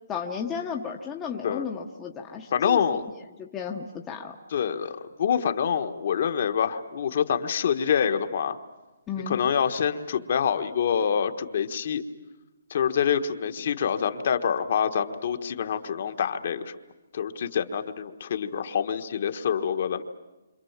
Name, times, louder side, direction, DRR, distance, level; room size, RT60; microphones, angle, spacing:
voice 1, 0.1-2.8 3.4-4.4 9.1-9.4, left 6 dB, 10° left, 1 dB, 0.9 m, -33 dB
voice 2, 2.5-3.0 4.5-8.6 9.3-12.0 12.7-16.7 17.1-20.0, left 7 dB, 40° left, 8 dB, 1.3 m, -26 dB
29.0 x 26.0 x 7.3 m, 1.1 s
hypercardioid pair, 175°, 0 cm